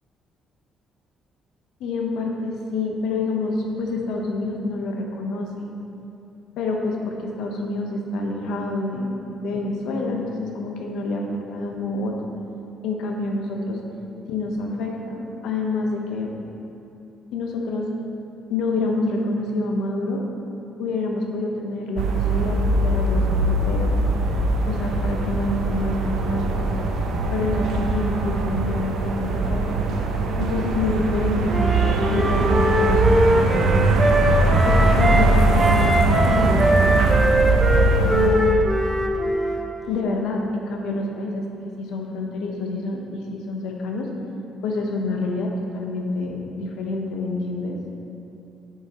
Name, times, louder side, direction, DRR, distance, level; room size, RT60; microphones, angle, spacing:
voice 1, 1.8-5.7 6.6-11.2 11.5-12.2 12.8-13.8 14.3-16.3 17.3-17.9 18.5-20.2 20.8-23.9 24.7-26.7 27.3-29.8 30.4-34.2 34.6-37.2 37.7-37.8 38.1-38.5 39.9-41.4 41.8-44.1 44.6-47.8, left 2 dB, 80° left, 1 dB, 0.9 m, -27 dB
sound 1, 22.0-38.3, right 2 dB, 70° right, 0.6 m, -21 dB
Wind instrument woodwind instrument, 31.5-35.3 35.6-39.7, right 1 dB, 10° right, 0.5 m, -21 dB
7.9 x 5.6 x 2.9 m, 2.9 s
cardioid pair, 145°, 0 cm